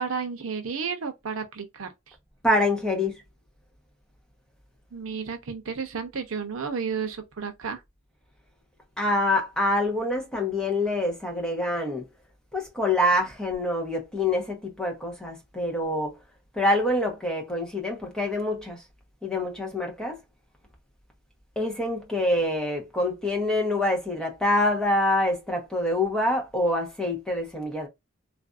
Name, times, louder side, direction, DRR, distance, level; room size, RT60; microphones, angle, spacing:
voice 1, 0.0-2.1 4.9-7.8, right 5 dB, 80° right, 0.6 m, -32 dB
voice 2, 2.4-3.2 9.0-12.0 12.5-16.1 16.5-18.8 19.2-20.2 21.6-27.9, left 1 dB, 5° left, 0.9 m, -26 dB
3.3 x 2.5 x 2.3 m
head